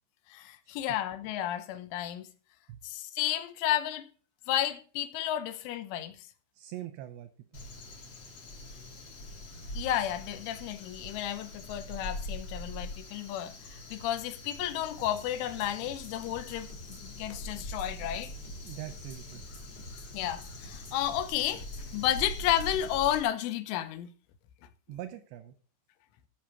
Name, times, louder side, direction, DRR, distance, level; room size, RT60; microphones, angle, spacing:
voice 1, 0.3-2.3 2.8-4.1 4.5-6.1 9.8-18.3 20.1-21.6 21.9-24.1, left 12 dB, 85° left, 3.4 m, -32 dB
voice 2, 6.6-7.3 18.6-19.4 24.9-25.5, right 13 dB, 80° right, 2.6 m, -42 dB
Crow, 7.5-23.2, left 1 dB, 60° left, 1.5 m, -43 dB
sound 1, 15.0-23.2, equal, 30° left, 1.8 m, -51 dB
15.0 x 6.0 x 5.1 m
omnidirectional pair, 5.6 m